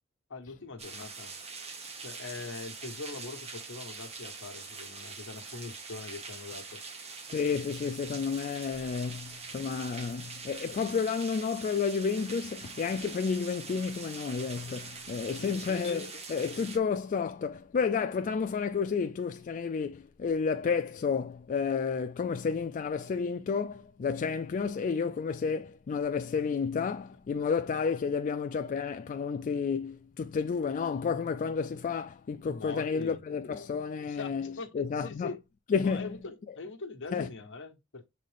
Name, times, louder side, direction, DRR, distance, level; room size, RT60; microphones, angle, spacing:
voice 1, 0.3-1.3 2.0-6.8 15.3-16.1 32.4-33.2 34.0-35.4 35.8-38.1, left 3 dB, 60° left, 1.2 m, -43 dB
sound 1, 0.8-16.8, right 4 dB, 30° right, 1.4 m, -44 dB
voice 2, 7.3-35.4 35.7-36.1 37.1-37.3, left 5 dB, 35° left, 0.3 m, -31 dB
7.2 x 4.0 x 3.4 m
head